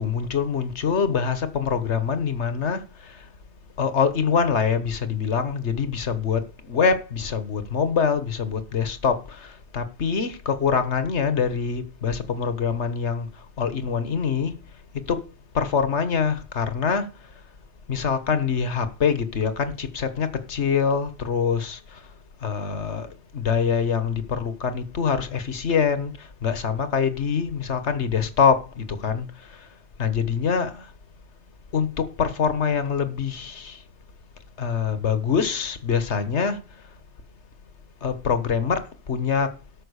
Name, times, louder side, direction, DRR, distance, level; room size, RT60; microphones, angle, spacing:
voice 1, 0.0-2.8 3.8-9.5 9.7-13.3 13.6-14.5 15.1-15.2 15.6-17.0 17.9-21.8 22.4-23.1 23.3-26.1 26.4-29.3 30.0-30.8 31.7-33.8 34.6-36.6 38.0-38.8 39.1-39.5, left 6 dB, 70° left, 1.7 m, -24 dB
13.0 x 6.1 x 6.5 m
omnidirectional pair, 1.2 m